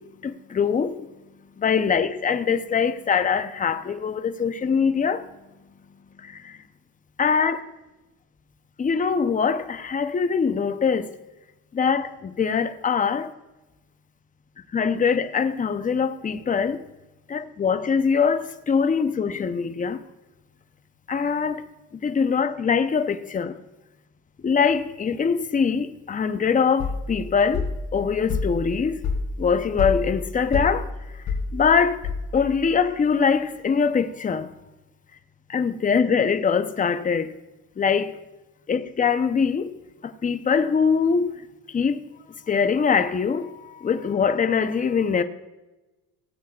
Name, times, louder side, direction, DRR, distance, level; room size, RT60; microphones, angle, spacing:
voice 1, 0.2-1.0 1.6-5.3 6.2-6.6 7.2-7.6 8.8-11.1 11.7-13.3 14.7-16.8 17.3-20.0 21.1-21.7 21.9-23.6 24.4-29.0 29.4-30.9 31.3-32.0 32.3-34.5 35.5-37.4 37.8-38.1 38.7-39.7 40.0-41.3 41.7-42.0 42.5-45.2, left 6 dB, 25° left, 0.7 m, -23 dB
sound 1, 26.8-32.6, left 4 dB, 65° left, 3.1 m, -29 dB
17.0 x 8.3 x 2.4 m
supercardioid pair, 90°, 35 cm